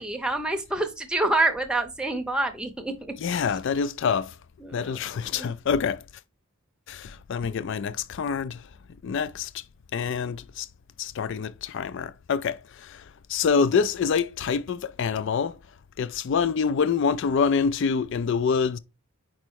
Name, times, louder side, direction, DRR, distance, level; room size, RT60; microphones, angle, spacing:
voice 1, 0.0-2.9 4.6-5.5, right 2 dB, 5° right, 0.6 m, -27 dB
voice 2, 3.2-4.3 4.7-6.0 6.9-8.6 9.0-9.5 9.9-10.7 11.0-13.0 13.3-15.5 16.0-18.8, left 6 dB, 55° left, 0.3 m, -26 dB
5.1 x 4.4 x 4.5 m
head